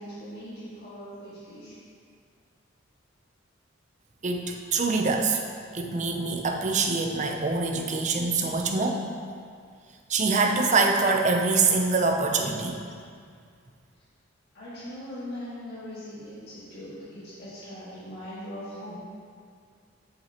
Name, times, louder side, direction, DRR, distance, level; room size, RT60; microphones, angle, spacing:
voice 1, 0.0-1.7 14.5-18.9, equal, 55° left, -12 dB, 1.9 m, -40 dB
voice 2, 4.2-5.4 5.7-9.0 10.1-12.9, right 3 dB, 35° right, 3 dB, 0.6 m, -24 dB
7.5 x 7.2 x 3.0 m, 2.2 s
head